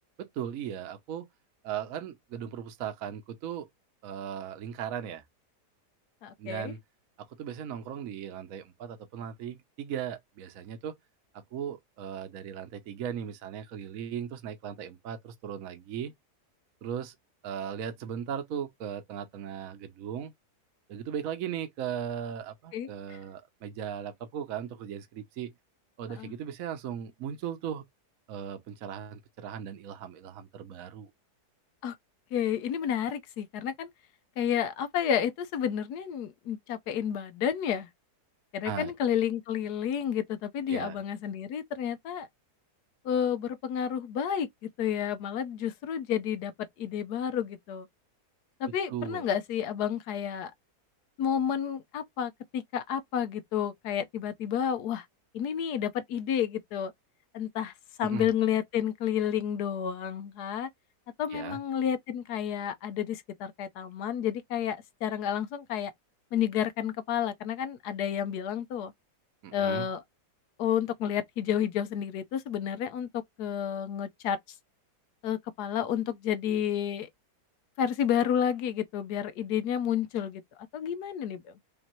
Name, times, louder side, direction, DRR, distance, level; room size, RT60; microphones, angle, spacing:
voice 1, 0.2-1.3 1.6-3.7 4.0-5.2 6.4-6.8 7.2-11.0 11.3-16.1 16.8-17.1 17.4-20.3 20.9-25.5 26.0-27.8 28.3-31.1 38.6-38.9 40.7-41.0 48.9-49.2 58.0-58.3 61.3-61.6 69.4-69.9, right 8 dB, 60° right, 1.1 m, -37 dB
voice 2, 6.2-6.7 22.7-22.9 26.1-26.3 31.8-31.9 32.3-33.9 34.4-37.9 38.5-42.3 43.0-44.5 44.8-46.5 46.8-47.9 48.6-50.5 51.2-55.0 55.3-56.9 57.3-57.7 58.0-60.7 61.2-65.9 66.3-68.9 69.5-70.0 70.6-74.4 75.2-77.1 77.8-80.4 80.7-81.4, left 9 dB, 75° left, 1.2 m, -30 dB
5.1 x 2.6 x 3.0 m
omnidirectional pair, 1.7 m